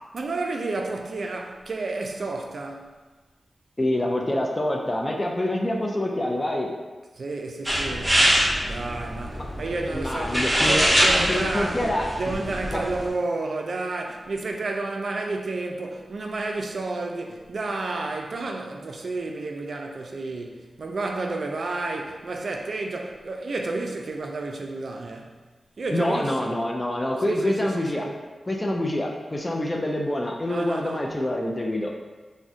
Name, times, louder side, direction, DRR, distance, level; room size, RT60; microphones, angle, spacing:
voice 1, 0.1-2.9 7.2-8.2 8.6-25.4 25.8-26.6 27.2-28.1 30.4-31.1, right 3 dB, 70° right, 2 dB, 0.3 m, -31 dB
voice 2, 3.8-6.7 9.4-9.5 9.9-12.1 12.7-12.8 25.9-28.0 28.5-31.9, left 1 dB, 25° left, 0 dB, 0.4 m, -26 dB
sound 1, 7.7-13.1, equal, 15° right, 0.8 m, -24 dB
2.5 x 2.1 x 3.6 m, 1.3 s
cardioid pair, 55°, 0 cm